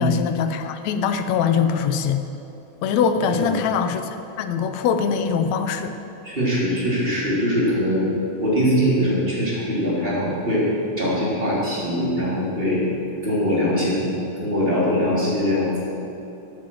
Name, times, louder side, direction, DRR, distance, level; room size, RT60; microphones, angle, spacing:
voice 1, 0.0-2.2 2.8-4.0 4.4-5.9, left 7 dB, 75° left, 8 dB, 1.9 m, -22 dB
voice 2, 3.3-3.6 6.2-8.1 8.4-10.6 11.0-12.8 13.2-14.1 14.4-15.7, equal, 20° right, -7 dB, 3.3 m, -22 dB
9.1 x 8.9 x 7.6 m, 2.9 s
omnidirectional pair, 3.3 m